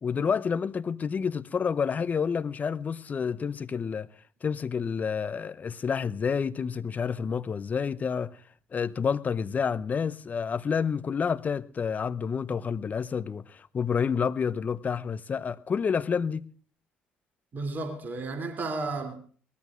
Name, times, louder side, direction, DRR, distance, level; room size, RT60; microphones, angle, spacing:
voice 1, 0.0-4.1 4.4-8.4 8.7-16.5, left 6 dB, 35° left, 0.7 m, -29 dB
voice 2, 17.5-19.2, right 3 dB, 40° right, 2.9 m, -33 dB
22.5 x 19.0 x 2.5 m
figure-of-eight pair, 55°, 5 cm